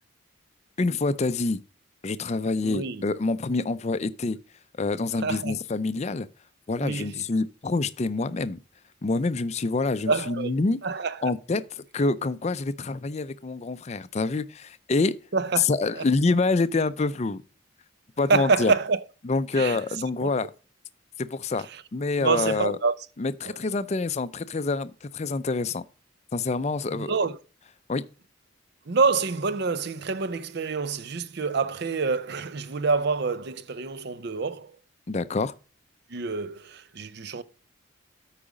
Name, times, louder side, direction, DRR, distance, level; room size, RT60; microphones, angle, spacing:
voice 1, 0.8-1.6 2.0-4.4 4.8-6.3 6.7-8.6 9.0-10.8 11.2-15.1 15.6-17.4 18.2-18.7 19.2-20.5 21.2-21.7 21.9-22.8 23.2-25.8 26.3-27.1 27.9-28.0 35.1-35.5, left 3 dB, 35° left, 0.4 m, -26 dB
voice 2, 2.6-3.0 5.2-5.5 6.8-7.2 10.1-10.5 10.8-11.3 15.3-15.7 15.9-16.0 18.3-19.0 19.6-19.8 20.2-20.3 22.2-22.9 23.4-23.6 27.0-27.3 28.9-34.7 36.1-37.4, right 4 dB, 55° right, 0.6 m, -26 dB
8.6 x 4.9 x 5.2 m
head